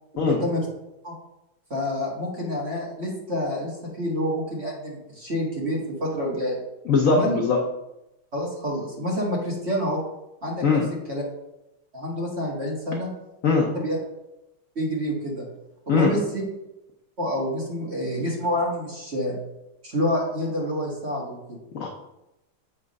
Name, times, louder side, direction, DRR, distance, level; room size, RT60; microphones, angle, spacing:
voice 1, 0.1-0.7 1.0-1.1 1.7-6.6 7.1-7.4 8.3-10.0 10.4-10.8 11.1-11.2 11.9-13.1 13.7-14.0 14.7-15.4 15.9-16.4 17.2-19.4 19.8-21.6, equal, 35° right, -3 dB, 1.6 m, -28 dB
voice 2, 6.9-7.6 10.6-10.8 13.4-13.7 15.9-16.1 21.7-21.9, left 4 dB, 65° left, 0 dB, 0.8 m, -20 dB
7.2 x 3.5 x 5.2 m, 0.92 s
omnidirectional pair, 2.3 m